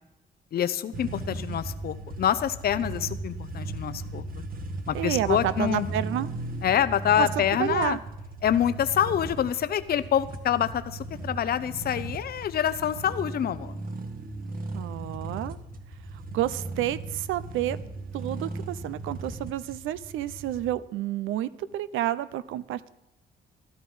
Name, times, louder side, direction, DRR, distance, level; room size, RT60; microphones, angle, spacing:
voice 1, 0.5-4.3 4.9-5.9 6.6-8.0 8.4-13.8, left 10 dB, 50° left, 13 dB, 0.7 m, -26 dB
sound 1, 0.9-20.7, right 2 dB, 45° right, 1.5 m, -37 dB
voice 2, 4.9-6.3 7.2-8.0 14.7-15.6 16.3-17.8 18.1-22.9, right 13 dB, 90° right, 16 dB, 0.5 m, -30 dB
13.0 x 11.5 x 5.5 m, 0.94 s
cardioid pair, 90°, 20 cm